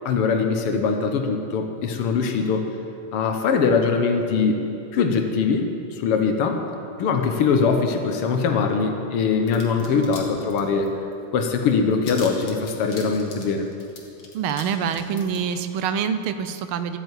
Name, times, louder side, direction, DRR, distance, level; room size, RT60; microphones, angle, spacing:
voice 1, 0.1-2.7 3.1-4.6 4.9-6.6 7.0-10.9 11.3-13.7, left 5 dB, 90° left, 4 dB, 1.9 m, -22 dB
sound 1, 9.5-10.2 10.5-11.1 11.4-11.5 11.7-14.6 14.9-15.4, left 4 dB, 60° left, 2.3 m, -40 dB
voice 2, 14.3-17.0, right 7 dB, 75° right, 10 dB, 1.5 m, -26 dB
12.5 x 9.1 x 8.1 m, 2.6 s
omnidirectional pair, 2.4 m